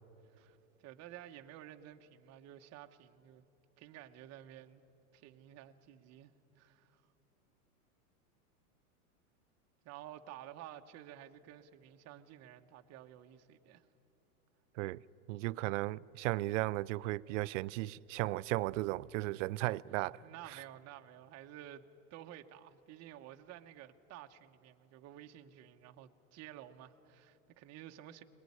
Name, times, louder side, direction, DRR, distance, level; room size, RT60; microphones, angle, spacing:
voice 1, 0.3-3.4 3.8-4.8 5.1-7.0 9.8-13.9 19.6-28.2, right 12 dB, 35° right, 1.2 m, -52 dB
voice 2, 15.3-20.2, right 19 dB, 55° right, 0.6 m, -35 dB
23.0 x 20.0 x 9.8 m
hypercardioid pair, 120°, 46 cm